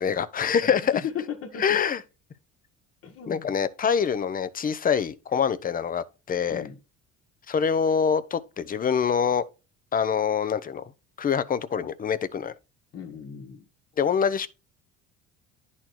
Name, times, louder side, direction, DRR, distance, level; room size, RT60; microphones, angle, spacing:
voice 1, 0.0-1.0 1.6-2.0 3.3-6.6 7.5-9.4 9.9-10.8 11.2-12.5 14.0-14.5, left 7 dB, 30° left, 0.7 m, -25 dB
voice 2, 0.6-1.8 3.0-3.5 6.5-6.8 12.9-13.6, left 8 dB, 45° left, 1.5 m, -36 dB
10.5 x 4.3 x 4.5 m
cardioid pair, 110°, 30 cm